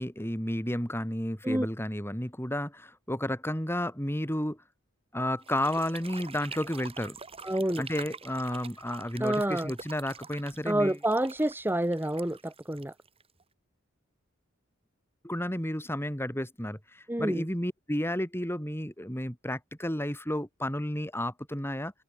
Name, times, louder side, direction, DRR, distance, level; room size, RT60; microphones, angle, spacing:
voice 1, 0.0-4.6 5.1-7.2 7.8-11.0 15.2-21.9, left 1 dB, 10° left, 6.4 m, -32 dB
sound 1, 5.4-13.4, right 5 dB, 30° right, 5.0 m, -46 dB
voice 2, 7.4-7.8 9.2-9.7 10.7-12.9 17.1-17.4, right 1 dB, 10° right, 1.6 m, -28 dB
open air
head